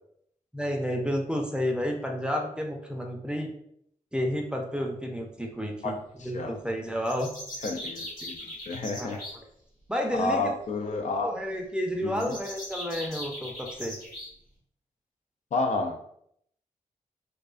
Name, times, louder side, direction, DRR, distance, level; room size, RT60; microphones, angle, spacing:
voice 1, 0.5-3.5 4.1-7.3 8.2-8.3 9.0-9.2 9.9-10.5 11.2-14.0, equal, 5° right, 2 dB, 0.5 m, -31 dB
voice 2, 6.2-6.6 7.6-9.2 10.1-11.3 12.0-12.3 15.5-16.0, left 3 dB, 60° left, 3 dB, 0.4 m, -30 dB
sound 1, 7.1-9.3 12.1-14.3, left 1 dB, 85° left, 0.9 m, -39 dB
2.3 x 2.2 x 2.4 m, 0.70 s
supercardioid pair, 40°, 14 cm